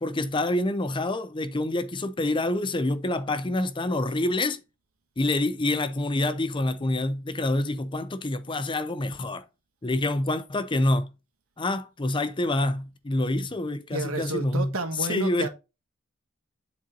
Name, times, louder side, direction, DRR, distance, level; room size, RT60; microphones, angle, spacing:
voice 1, 0.0-4.6 5.2-9.5 9.8-11.1 11.6-14.7 15.1-15.5, left 2 dB, 25° left, 0.6 m, -27 dB
voice 2, 13.9-15.5, right 2 dB, 85° right, 1.4 m, -31 dB
7.6 x 4.2 x 3.8 m
head